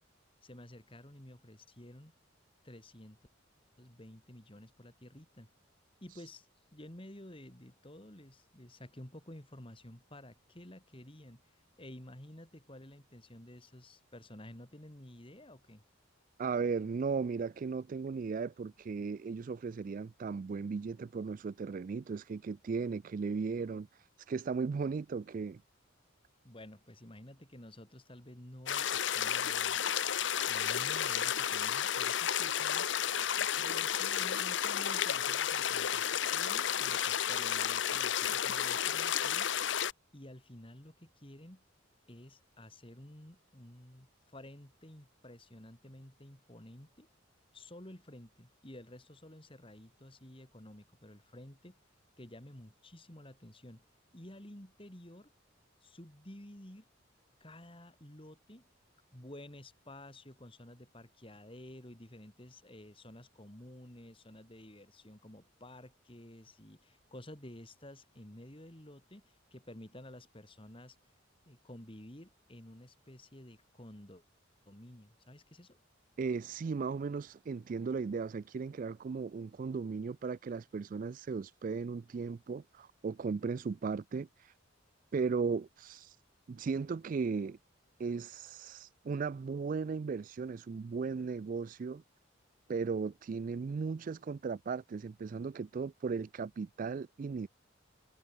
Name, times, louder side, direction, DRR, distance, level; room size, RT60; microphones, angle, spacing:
voice 1, 0.4-2.1 2.6-3.2 3.8-5.5 6.0-11.5 11.8-15.8 26.4-29.8 30.4-32.9 33.6-39.5 40.1-41.6 42.1-47.1 47.5-51.7 52.2-53.8 54.1-55.3 55.8-56.9 57.4-58.6 59.1-71.0 71.4-74.2 74.6-75.8, left 1 dB, 25° left, 3.2 m, -52 dB
voice 2, 16.4-25.6 76.2-84.5 85.1-86.2 86.5-87.6 88.0-92.0 92.7-97.5, right 5 dB, 40° right, 0.3 m, -36 dB
sound 1, 28.7-39.9, left 9 dB, 60° left, 0.8 m, -32 dB
head